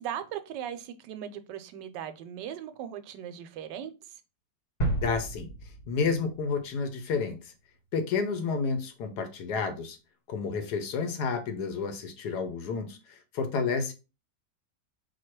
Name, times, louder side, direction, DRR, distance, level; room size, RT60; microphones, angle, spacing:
voice 1, 0.0-3.9, right 9 dB, 80° right, 1.2 m, -38 dB
sound 1, 4.8-6.7 7.1-7.2, right 2 dB, 35° left, 0.8 m, -33 dB
voice 2, 5.0-5.5 5.9-7.5 7.9-10.0 10.3-13.9, left 5 dB, 70° left, 1.2 m, -30 dB
4.2 x 2.3 x 4.4 m
omnidirectional pair, 1.9 m